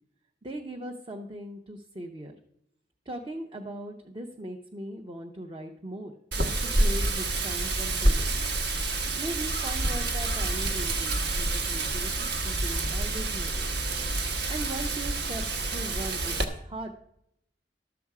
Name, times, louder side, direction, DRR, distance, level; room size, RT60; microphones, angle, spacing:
voice 1, 0.4-2.3 3.1-8.3 9.0-13.7 14.5-17.0, right 1 dB, 30° right, 2 dB, 0.7 m, -39 dB
Wind, 6.3-16.4, right 2 dB, 70° right, 1.2 m, -28 dB
12.5 x 6.9 x 4.8 m, 0.77 s
head